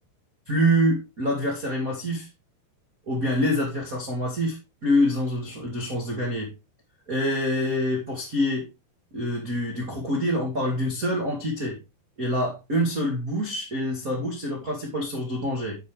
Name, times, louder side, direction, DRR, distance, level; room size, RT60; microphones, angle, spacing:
voice 1, 0.5-2.3 3.0-6.5 7.1-8.6 9.1-11.8 12.2-15.8, equal, 35° right, 1.4 m, -26 dB
9.5 x 7.3 x 3.4 m
omnidirectional pair, 5.2 m